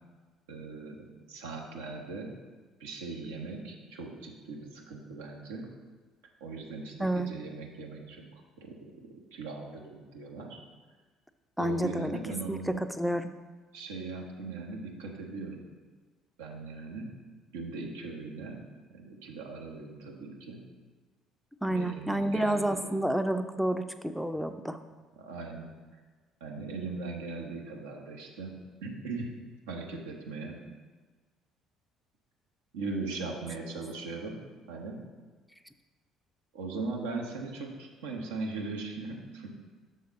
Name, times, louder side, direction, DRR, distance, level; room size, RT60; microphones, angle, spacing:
voice 1, 0.5-1.0 1.3-2.3 2.8-5.7 6.4-8.7 9.3-10.6 11.6-12.8 13.7-15.6 16.4-17.1 17.5-18.6 18.9-20.6 21.6-22.8 25.2-25.7 26.4-28.6 28.8-29.3 29.7-30.5 32.7-34.4 34.7-35.0 36.5-39.6, right 3 dB, 75° right, 1 dB, 0.9 m, -39 dB
voice 2, 11.6-12.2 12.5-13.3 21.6-24.8, right 1 dB, ahead, 9 dB, 0.4 m, -29 dB
6.4 x 4.0 x 5.2 m, 1.3 s
figure-of-eight pair, 55°, 0 cm